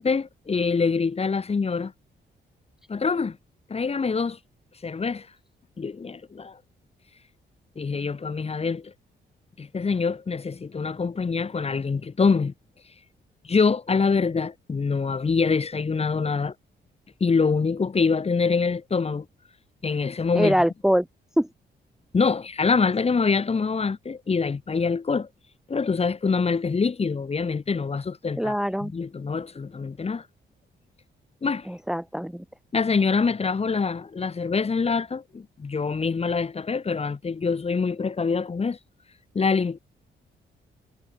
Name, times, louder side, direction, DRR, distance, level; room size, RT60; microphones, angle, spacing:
voice 1, 0.0-1.9 2.9-3.4 3.7-4.4 4.8-5.3 5.8-6.6 7.8-8.9 9.6-12.5 13.4-16.5 17.2-19.3 19.8-20.6 22.1-25.3 25.7-28.6 28.8-30.2 31.4-31.7 32.7-38.8 39.3-39.8, left 5 dB, 35° left, 2.1 m, -25 dB
voice 2, 20.3-21.1 21.4-21.5 28.4-28.9 31.7-32.4, equal, ahead, 1.1 m, -23 dB
cardioid pair, 105°, 19 cm